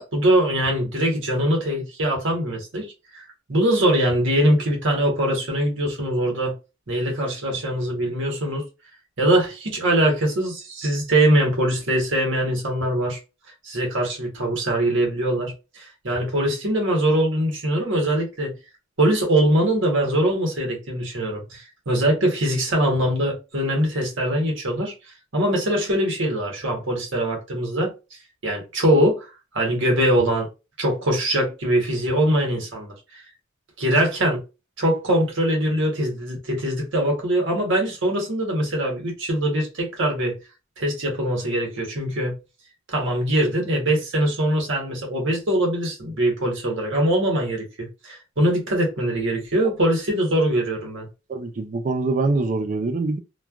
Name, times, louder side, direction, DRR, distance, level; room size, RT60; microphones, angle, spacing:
voice 1, 0.0-3.2 3.5-6.5 6.9-8.6 9.2-13.2 13.6-18.5 19.0-24.9 25.3-27.9 28.4-30.5 30.8-33.2 33.8-34.4 34.8-40.4 40.8-42.3 42.9-51.1, right 1 dB, 65° right, 1.2 m, -22 dB
voice 2, 51.3-53.2, right 3 dB, 40° right, 0.4 m, -24 dB
3.1 x 2.3 x 2.4 m
head